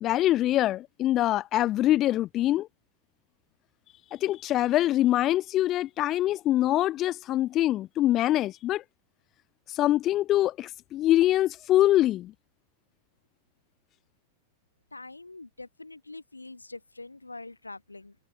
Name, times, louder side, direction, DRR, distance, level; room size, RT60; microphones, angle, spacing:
voice 1, 0.0-2.7 4.1-8.8 9.7-12.3, left 14 dB, 35° left, 0.4 m, -24 dB
voice 2, 14.9-18.2, left 2 dB, 80° left, 2.4 m, -44 dB
figure-of-eight pair, 90°, 0 cm